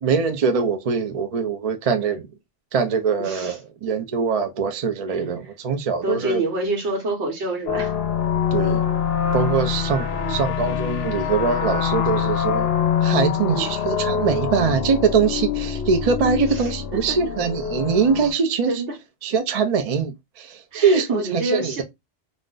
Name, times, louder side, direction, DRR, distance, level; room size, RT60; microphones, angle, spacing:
voice 1, 0.0-2.3 2.7-3.5 3.8-6.4 8.5-8.8 9.3-12.7 13.0-18.7 19.2-21.8, right 5 dB, 50° right, 0.4 m, -22 dB
voice 2, 3.2-3.6 5.1-5.6 5.9-7.9 10.1-10.4 13.4-13.7 16.5-17.2 18.7-19.0 20.7-21.8, right 2 dB, 70° right, 1.1 m, -28 dB
sound 1, 7.7-18.3, left 8 dB, 65° left, 0.8 m, -24 dB
2.5 x 2.1 x 3.7 m
omnidirectional pair, 1.2 m